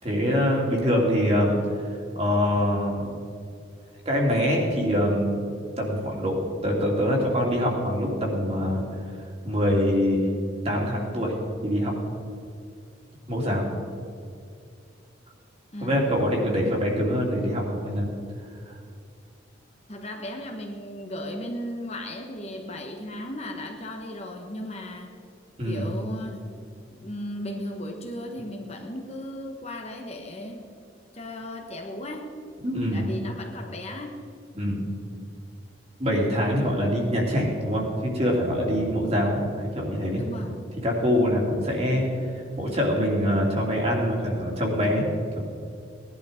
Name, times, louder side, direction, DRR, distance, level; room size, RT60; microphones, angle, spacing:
voice 1, 0.0-1.5 2.1-3.1 4.0-5.4 5.8-8.9 9.4-10.3 10.6-11.3 11.6-11.9 13.3-13.6 15.8-18.1 25.6-25.8 32.6-33.1 34.6-34.9 36.0-40.2 40.8-42.1 42.6-45.0 45.4-45.5, equal, 35° right, -1 dB, 3.0 m, -24 dB
voice 2, 19.9-25.1 25.6-26.4 26.9-30.6 31.1-32.3 32.9-34.1 40.2-40.7 41.1-41.4, left 1 dB, 35° left, 3 dB, 1.3 m, -36 dB
18.5 x 11.0 x 5.2 m, 2.3 s
head